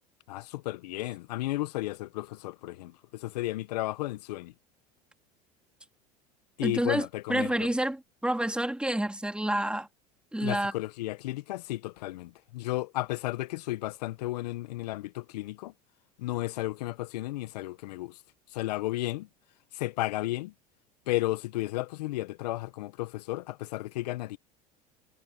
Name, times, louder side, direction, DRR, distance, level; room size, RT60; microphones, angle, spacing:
voice 1, 0.3-4.5 6.6-7.5 10.4-15.7 16.2-18.2 18.5-19.3 19.7-20.5 21.1-24.4, left 18 dB, 75° left, 1.3 m, -33 dB
voice 2, 6.6-9.9 10.3-10.7, right 1 dB, 5° right, 2.9 m, -29 dB
hypercardioid pair, 80°, 21 cm